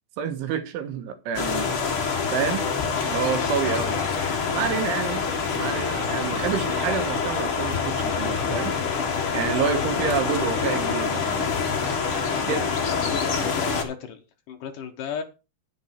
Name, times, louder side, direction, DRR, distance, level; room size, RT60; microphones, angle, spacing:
voice 1, 0.2-1.9 2.3-4.1 4.5-5.2 5.6-8.8 9.3-11.6 12.5-12.7, right 7 dB, 85° right, 8 dB, 3.8 m, -28 dB
sound 1, 1.3-13.8, left 5 dB, 50° left, 1.7 m, -26 dB
voice 2, 12.3-15.2, left 7 dB, 70° left, 4 dB, 2.1 m, -35 dB
10.0 x 9.4 x 4.4 m, 0.30 s
omnidirectional pair, 5.4 m